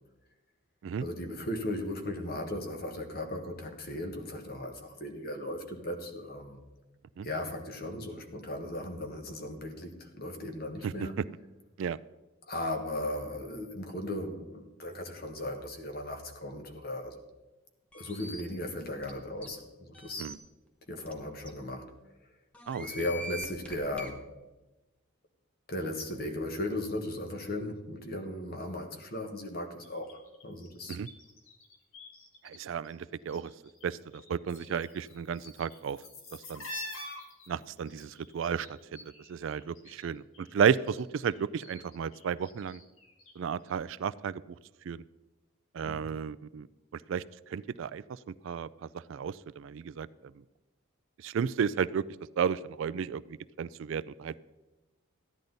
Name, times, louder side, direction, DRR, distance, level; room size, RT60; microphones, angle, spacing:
voice 1, 1.0-6.6 7.2-11.2 12.5-17.2 17.9-20.3 20.9-21.8 22.8-24.2 25.7-31.0 45.8-46.1, left 1 dB, 45° left, 5 dB, 1.4 m, -37 dB
sound 1, 17.9-18.4 19.0-19.1 19.4-19.5 19.9-20.3 21.1-21.2 21.5-21.6 22.5-24.1, right 1 dB, 5° left, 0.9 m, -42 dB
voice 2, 22.7-23.1 30.9-31.1 32.4-33.5 33.8-36.0 36.3-36.7 37.5-42.8 43.4-44.4 44.9-45.0 45.7-46.7 46.9-50.1 51.2-52.1 52.4-54.3, right 7 dB, 65° right, 17 dB, 0.3 m, -33 dB
sound 2, 29.8-32.6 32.8-33.9 34.1-40.1 40.3-43.4 43.7-43.8, left 1 dB, 70° left, 1.8 m, -47 dB
14.0 x 10.5 x 4.0 m, 1.1 s
head